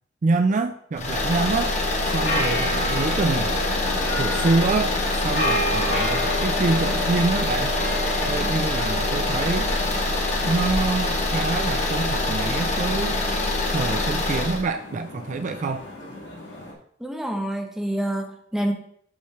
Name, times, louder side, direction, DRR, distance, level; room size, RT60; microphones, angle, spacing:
voice 1, 0.2-1.7 2.0-3.5 4.2-7.7 8.3-9.7 10.4-13.2 13.7-15.9, right 3 dB, 40° right, 8 dB, 0.4 m, -26 dB
sound 1, 1.0-14.6, left 2 dB, 40° left, 1.2 m, -25 dB
sound 2, 2.0-16.7, equal, 85° left, 2.2 m, -33 dB
Wind instrument woodwind instrument, 5.8-10.1, left 2 dB, 60° right, 2.7 m, -36 dB
voice 2, 17.0-18.7, right 1 dB, 5° right, 2 dB, 0.9 m, -27 dB
8.3 x 3.2 x 5.8 m, 0.66 s
head